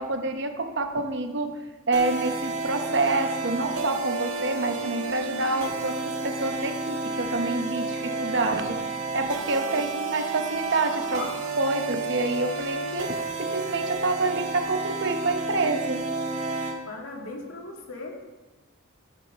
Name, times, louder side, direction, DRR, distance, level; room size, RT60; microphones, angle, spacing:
voice 1, 0.0-11.3 11.6-16.1, right 2 dB, 55° right, 6 dB, 1.0 m, -27 dB
sound 1, 1.9-16.8, right 3 dB, 80° right, 1.7 m, -31 dB
voice 2, 9.6-10.1 11.1-11.3 16.9-18.2, left 3 dB, 75° left, 0 dB, 2.4 m, -38 dB
14.5 x 6.1 x 6.3 m, 1.2 s
head